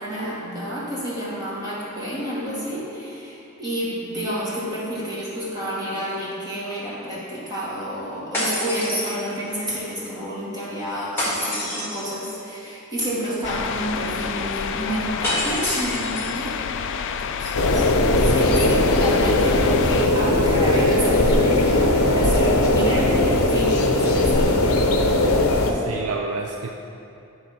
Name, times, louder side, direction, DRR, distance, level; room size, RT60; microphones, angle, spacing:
voice 1, 0.0-17.0 17.4-17.9 18.2-24.7, equal, 20° right, -8 dB, 1.9 m, -30 dB
sound 1, 8.3-9.6 11.2-12.2 15.2-16.4, left 1 dB, 10° left, 1.7 m, -27 dB
sound 2, 13.4-20.1, left 6 dB, 60° left, 0.4 m, -29 dB
sound 3, 17.5-25.7, left 1 dB, 85° left, 0.7 m, -19 dB
voice 2, 18.2-18.6 25.7-26.7, right 3 dB, 90° right, 2 dB, 0.5 m, -30 dB
10.0 x 3.7 x 5.5 m, 2.7 s
head